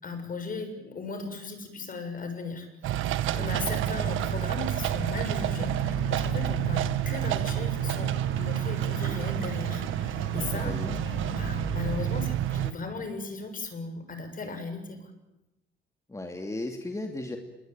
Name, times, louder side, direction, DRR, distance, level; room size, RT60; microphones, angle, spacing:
voice 1, 0.0-2.7 3.3-10.8 11.3-15.1, left 3 dB, 45° left, 8 dB, 6.9 m, -37 dB
sound 1, 2.8-12.7, right 12 dB, 85° right, 1.5 m, -29 dB
voice 2, 3.2-3.8 10.4-11.0 16.1-17.4, left 2 dB, 15° left, 4 dB, 2.9 m, -36 dB
sound 2, 3.9-12.1, left 7 dB, 60° left, 6.6 m, -41 dB
27.0 x 22.5 x 9.1 m, 0.95 s
cardioid pair, 90°, 20 cm